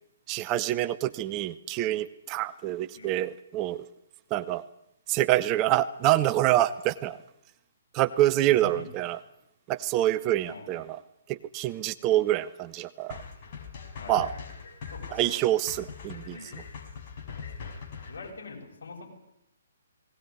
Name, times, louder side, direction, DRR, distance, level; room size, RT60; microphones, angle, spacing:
voice 1, 0.3-3.9 4.3-4.6 5.1-7.2 7.9-9.2 9.7-11.0 11.3-13.2 14.1-14.3 15.1-16.4, right 14 dB, 25° right, 14 dB, 0.8 m, -26 dB
voice 2, 8.4-8.9 10.5-10.8 13.9-14.4 14.9-15.4 16.3-16.5 18.1-19.1, left 4 dB, 60° left, 0 dB, 7.8 m, -44 dB
sound 1, 13.1-18.3, left 6 dB, 40° left, 5.3 m, -42 dB
19.5 x 18.0 x 9.5 m, 0.83 s
figure-of-eight pair, 130°, 0 cm